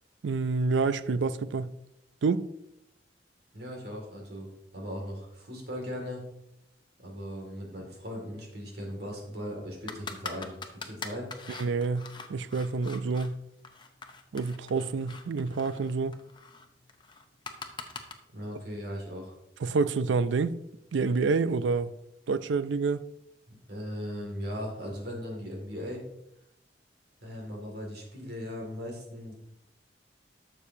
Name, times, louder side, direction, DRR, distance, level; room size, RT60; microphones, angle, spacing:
voice 1, 0.2-1.7 2.2-2.5 11.6-13.4 14.3-16.2 19.6-20.6 20.9-21.9 22.3-23.0, right 4 dB, 80° right, 0.4 m, -28 dB
voice 2, 3.5-4.5 4.7-6.2 7.0-11.3 18.3-19.3 23.5-26.1 27.2-29.3, equal, 60° right, 2.2 m, -38 dB
sound 1, 9.9-13.3 13.6-18.1, left 4 dB, 25° left, 0.7 m, -43 dB
11.5 x 6.8 x 2.7 m
head